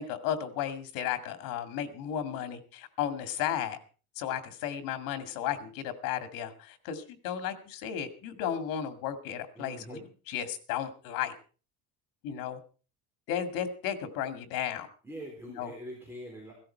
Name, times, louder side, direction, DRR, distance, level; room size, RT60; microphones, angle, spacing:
voice 1, 0.0-3.8 4.2-10.0 10.3-11.3 12.2-12.6 13.3-14.9 15.6-15.7, left 9 dB, 90° left, 9 dB, 2.2 m, -34 dB
voice 2, 9.6-10.0 15.0-16.5, equal, 5° right, -3 dB, 3.9 m, -43 dB
16.5 x 13.5 x 4.5 m, 0.38 s
cardioid pair, 170°, 33 cm